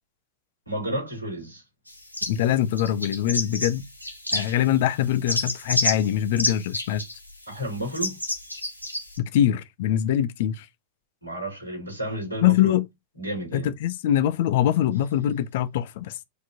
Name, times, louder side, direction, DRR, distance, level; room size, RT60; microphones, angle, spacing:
voice 1, 0.7-1.6 7.5-8.2 11.2-12.7 13.2-13.7, right 1 dB, 90° right, 5.4 m, -31 dB
sound 1, 1.9-2.5 2.8-4.8 5.0-9.2, left 1 dB, 90° left, 1.3 m, -30 dB
voice 2, 2.3-3.8 4.3-7.0 9.2-10.7 12.4-12.8 13.5-16.2, left 11 dB, 55° left, 0.8 m, -23 dB
8.3 x 4.5 x 2.8 m
figure-of-eight pair, 90°, 0 cm